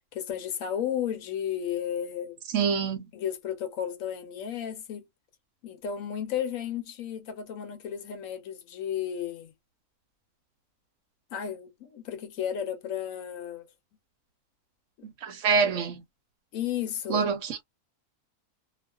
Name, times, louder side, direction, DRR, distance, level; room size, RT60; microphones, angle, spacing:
voice 1, 0.1-2.4 3.1-5.0 5.6-9.5 11.3-13.7 16.5-17.3, left 9 dB, 70° left, 1.0 m, -33 dB
voice 2, 2.5-3.0 15.0-16.0 17.1-17.7, right 6 dB, 65° right, 0.9 m, -26 dB
2.3 x 2.3 x 2.2 m
omnidirectional pair, 1.6 m